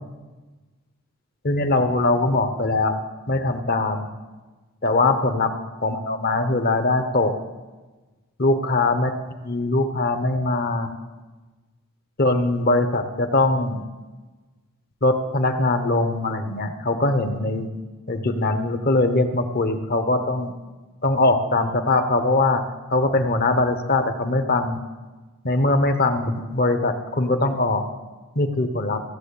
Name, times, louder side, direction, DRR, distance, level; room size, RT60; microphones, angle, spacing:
voice 1, 1.4-2.9 3.3-4.1 4.8-5.5 5.8-7.3 8.4-9.1 9.4-10.9 12.2-13.8 15.0-17.7 18.1-20.5 21.0-22.6 22.9-24.8 25.4-27.8 28.4-29.0, left 2 dB, 45° left, 8 dB, 1.0 m, -21 dB
15.5 x 7.3 x 8.5 m, 1.3 s
head